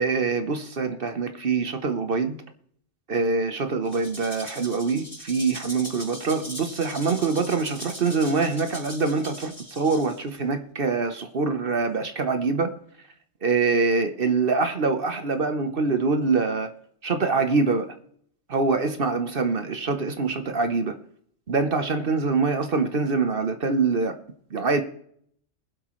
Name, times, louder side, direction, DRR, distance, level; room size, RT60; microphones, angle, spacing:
voice 1, 0.0-2.4 3.1-12.7 13.4-16.7 17.0-17.9 18.5-21.0 21.5-24.2 24.5-24.8, right 4 dB, 50° right, 8 dB, 1.1 m, -24 dB
Rattle (instrument), 3.8-10.4, equal, 30° left, 5.2 m, -40 dB
21.5 x 8.0 x 3.1 m, 0.65 s
omnidirectional pair, 1.3 m